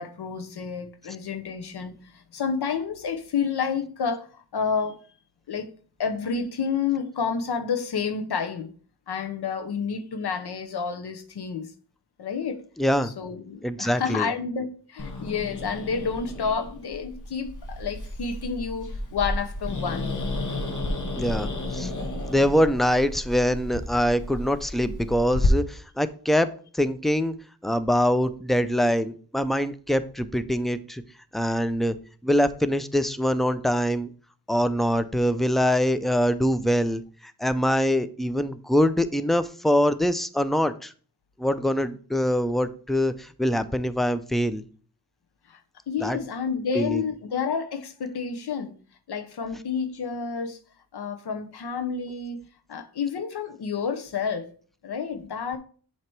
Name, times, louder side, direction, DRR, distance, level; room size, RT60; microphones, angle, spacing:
voice 1, 0.0-5.0 5.5-5.7 6.0-8.7 9.1-11.7 12.2-12.6 13.0-20.1 45.5-45.6 45.9-48.8 49.1-50.6 50.9-54.5 54.8-55.6, left 6 dB, 75° left, 0.9 m, -30 dB
voice 2, 12.8-13.1 13.6-14.3 21.2-21.9 22.3-27.3 27.6-31.0 31.3-32.0 32.2-34.1 34.5-40.9 41.4-44.6 46.0-46.2 46.7-47.0, equal, ahead, 0.4 m, -24 dB
Growling, 15.0-25.5, left 2 dB, 50° left, 1.3 m, -32 dB
7.5 x 3.0 x 4.5 m
wide cardioid pair, 75°, 40 cm